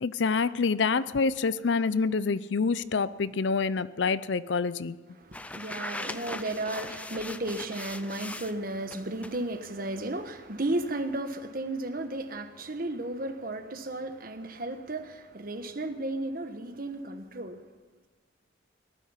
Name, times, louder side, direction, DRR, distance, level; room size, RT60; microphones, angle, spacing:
voice 1, 0.0-5.0, left 4 dB, 65° left, 0.5 m, -27 dB
voice 2, 5.2-17.6, right 2 dB, 45° right, 1.2 m, -34 dB
sound 1, 5.3-8.5 8.9-9.4, left 2 dB, 5° left, 0.4 m, -39 dB
19.0 x 12.5 x 5.7 m
head